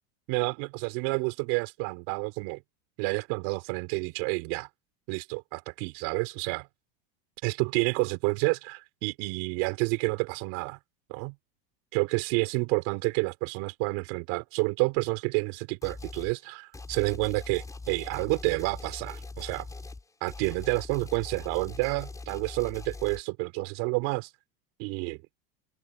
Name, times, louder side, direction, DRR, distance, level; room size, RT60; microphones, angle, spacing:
voice 1, 0.3-2.6 3.0-4.7 5.1-6.7 7.4-10.8 11.1-11.3 11.9-19.7 20.2-24.3 24.8-25.2, right 31 dB, 65° right, 5.2 m, -29 dB
sound 1, 15.8-16.3 16.7-23.2, left 3 dB, 10° left, 5.3 m, -42 dB
supercardioid pair, 130°, 29 cm